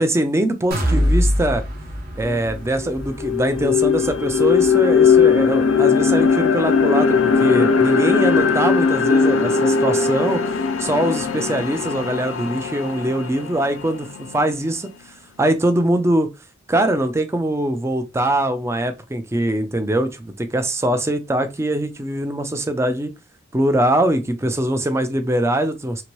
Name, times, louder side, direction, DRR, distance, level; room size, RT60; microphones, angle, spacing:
voice 1, 0.0-1.6 2.2-10.4 10.8-14.1 14.3-14.9 15.4-16.3 16.7-23.1 23.5-26.0, right 1 dB, 15° right, 0.3 m, -22 dB
sound 1, 0.7-8.5 8.9-9.0 9.4-9.5, equal, 50° right, 0.9 m, -26 dB
sound 2, 2.3-2.4 2.8-14.9, left 5 dB, 85° left, 0.4 m, -19 dB
2.8 x 2.5 x 3.0 m
head